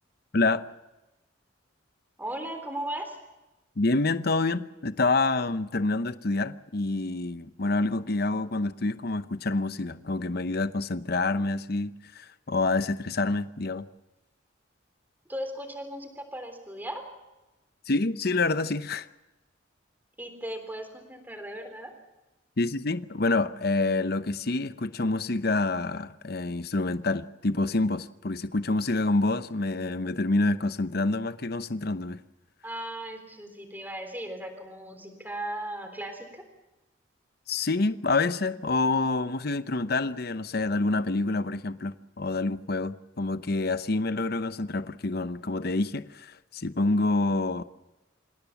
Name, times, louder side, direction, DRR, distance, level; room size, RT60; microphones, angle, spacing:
voice 1, 0.3-0.6 3.8-13.8 17.9-19.1 22.6-32.2 37.5-47.6, left 3 dB, 50° left, 0.8 m, -27 dB
voice 2, 2.2-3.2 15.3-17.0 20.2-21.9 32.6-36.4, right 1 dB, 10° right, 3.6 m, -37 dB
27.0 x 17.5 x 7.1 m
head